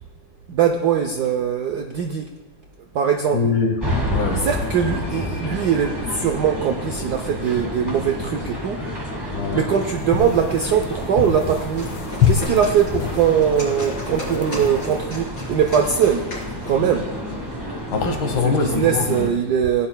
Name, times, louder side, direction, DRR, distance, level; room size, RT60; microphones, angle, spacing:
voice 1, 0.5-2.3 2.9-3.4 4.4-8.8 9.5-11.9 12.3-16.3 16.7-17.1 18.4-19.9, right 8 dB, 75° right, 4 dB, 0.9 m, -21 dB
voice 2, 3.3-3.8 4.1-4.5 9.3-9.7 16.8-16.9 17.9-19.3, left 4 dB, 65° left, 5 dB, 1.8 m, -23 dB
sound 1, 3.8-19.3, equal, 15° right, 0.9 m, -30 dB
sound 2, 10.0-15.1, left 8 dB, 80° left, 1.6 m, -27 dB
sound 3, 11.6-16.8, left 1 dB, 35° left, 3.9 m, -37 dB
17.0 x 9.9 x 2.2 m, 1.2 s
omnidirectional pair, 2.4 m